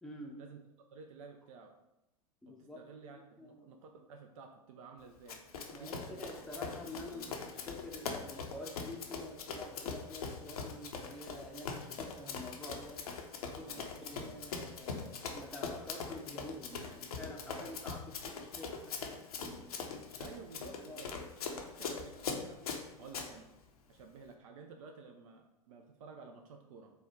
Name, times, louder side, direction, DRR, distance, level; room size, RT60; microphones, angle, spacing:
voice 1, 0.0-0.4 2.4-2.9 3.4-3.8 5.7-13.1 13.4-19.6 20.8-21.1, left 1 dB, ahead, -1 dB, 0.6 m, -48 dB
voice 2, 0.9-1.8 2.5-5.4 5.7-6.2 6.5-7.4 13.5-14.3 17.5-17.8 20.2-22.6 23.0-23.5 23.9-26.9, right 5 dB, 60° right, 4 dB, 0.5 m, -53 dB
Run, 5.3-23.3, left 5 dB, 75° left, 0.6 m, -42 dB
4.3 x 2.3 x 4.3 m, 0.95 s
figure-of-eight pair, 95°, 19 cm